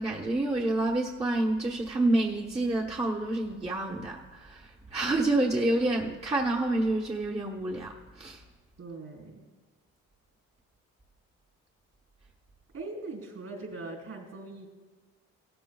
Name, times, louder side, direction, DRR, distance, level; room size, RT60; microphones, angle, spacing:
voice 1, 0.0-8.4, right 2 dB, 20° right, -3 dB, 1.2 m, -28 dB
voice 2, 8.8-9.4 12.7-14.7, right 3 dB, 55° right, 1 dB, 3.8 m, -41 dB
17.0 x 13.0 x 2.3 m, 1.4 s
cardioid pair, 90°, 30 cm